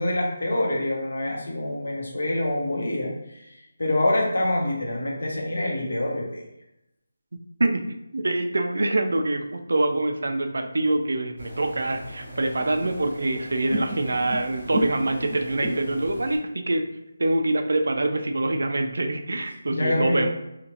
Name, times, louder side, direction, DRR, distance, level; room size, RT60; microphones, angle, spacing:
voice 1, 0.0-3.5 3.8-6.5 19.7-20.3, left 1 dB, 60° left, -1 dB, 0.8 m, -26 dB
voice 2, 7.6-16.9 17.2-20.3, right 2 dB, 60° right, 6 dB, 0.3 m, -25 dB
sound 1, 11.4-16.4, equal, 35° left, 1.1 m, -34 dB
2.8 x 2.5 x 2.8 m, 0.88 s
figure-of-eight pair, 180°, 0 cm